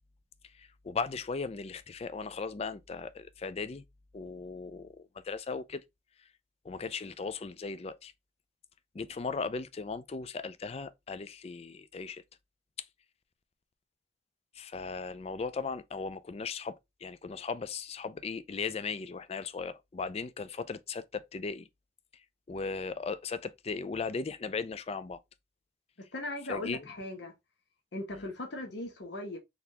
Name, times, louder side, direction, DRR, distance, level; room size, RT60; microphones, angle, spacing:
voice 1, 0.5-3.8 4.1-5.8 6.6-8.1 8.9-12.2 14.6-21.7 22.5-25.2 26.5-26.9 28.1-28.3, left 4 dB, 35° left, 0.4 m, -37 dB
voice 2, 26.0-27.3 27.9-29.4, left 2 dB, 70° left, 1.0 m, -38 dB
4.0 x 3.3 x 2.8 m
head